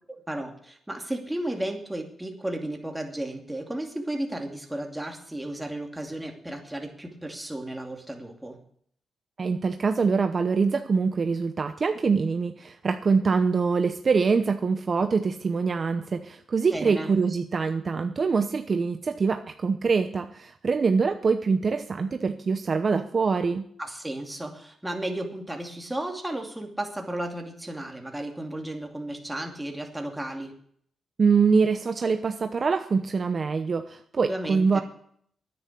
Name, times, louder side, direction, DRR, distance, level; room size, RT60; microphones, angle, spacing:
voice 1, 0.1-8.6 16.7-17.2 23.8-30.5 34.3-34.8, right 1 dB, 10° right, 2 dB, 2.5 m, -34 dB
voice 2, 9.4-23.7 31.2-34.8, right 5 dB, 45° right, 7 dB, 0.8 m, -24 dB
10.0 x 9.4 x 8.4 m, 0.64 s
cardioid pair, 80°, 0 cm